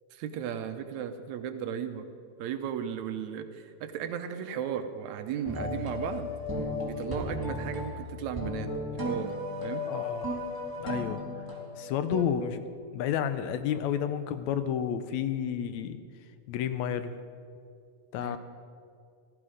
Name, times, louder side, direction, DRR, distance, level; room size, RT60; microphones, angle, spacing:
voice 1, 0.1-2.1 2.4-6.3 6.9-8.7 9.1-9.3 9.6-9.8 18.2-18.4, right 8 dB, 80° right, 8 dB, 2.1 m, -35 dB
sound 1, 5.4-12.2, left 1 dB, 10° right, 1.4 m, -35 dB
voice 2, 9.9-10.4 10.8-11.2 11.8-12.6 12.9-16.0 16.5-17.2 18.1-18.4, left 9 dB, 80° left, 11 dB, 1.9 m, -31 dB
15.5 x 14.0 x 5.1 m, 2.3 s
omnidirectional pair, 3.3 m